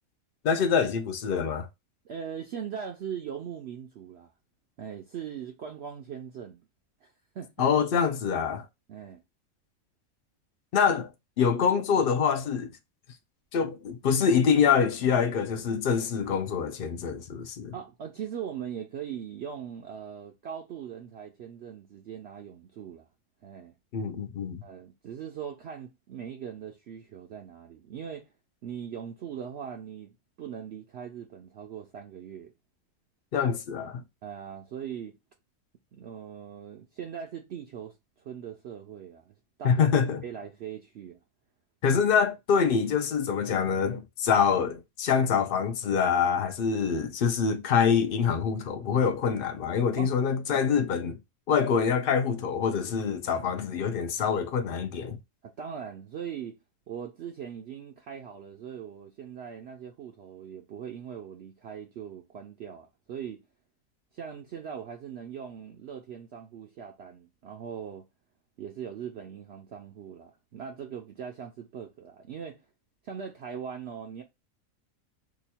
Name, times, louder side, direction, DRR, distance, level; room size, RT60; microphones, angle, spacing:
voice 1, 0.4-1.7 7.6-8.7 10.7-11.1 11.4-12.7 13.5-17.7 23.9-24.6 33.3-34.0 39.6-40.2 41.8-51.2 51.5-55.2, left 6 dB, 65° left, 0.5 m, -25 dB
voice 2, 2.0-4.3 4.8-6.6 7.0-7.7 8.9-9.2 17.7-23.1 23.4-23.7 24.6-28.3 28.6-32.5 34.2-35.2 35.9-41.2 41.9-42.0 50.0-50.1 55.4-56.6 56.9-63.4 64.1-68.0 68.6-72.6 73.0-74.2, right 8 dB, 65° right, 0.7 m, -40 dB
3.0 x 2.3 x 4.1 m
omnidirectional pair, 1.5 m